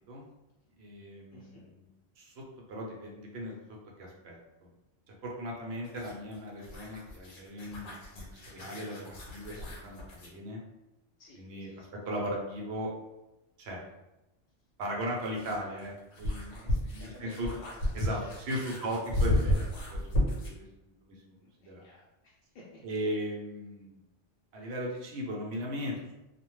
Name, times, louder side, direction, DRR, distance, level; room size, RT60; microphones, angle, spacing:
voice 1, 0.8-1.8 2.2-2.4 2.7-3.5 4.0-4.4 5.2-10.6 11.4-12.9 13.6-13.8 14.8-17.5 17.9-20.0 20.4-21.1 21.6-21.8 22.8-24.0 24.5-26.1, equal, 65° right, -2 dB, 0.8 m, -37 dB
voice 2, 1.3-1.6 11.2-11.9 16.5-18.3 21.4-22.8, left 1 dB, 55° left, -7 dB, 0.6 m, -55 dB
sound 1, 5.8-10.4 12.7-12.8 14.8-20.6, left 1 dB, 90° left, 1.0 m, -33 dB
2.4 x 2.1 x 3.0 m, 0.94 s
omnidirectional pair, 1.3 m